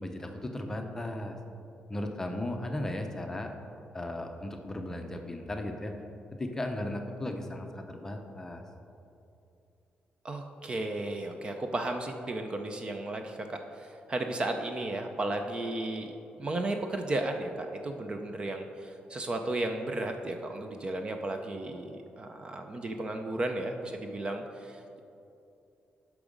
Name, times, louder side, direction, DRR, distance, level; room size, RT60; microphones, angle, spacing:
voice 1, 0.0-1.4 1.9-3.5 3.9-5.9 6.4-8.6, left 1 dB, 15° left, 4 dB, 0.6 m, -36 dB
voice 2, 10.2-16.1 16.4-25.0, right 2 dB, 30° right, 5 dB, 0.5 m, -34 dB
8.6 x 6.0 x 5.2 m, 2.7 s
wide cardioid pair, 160°, 3 cm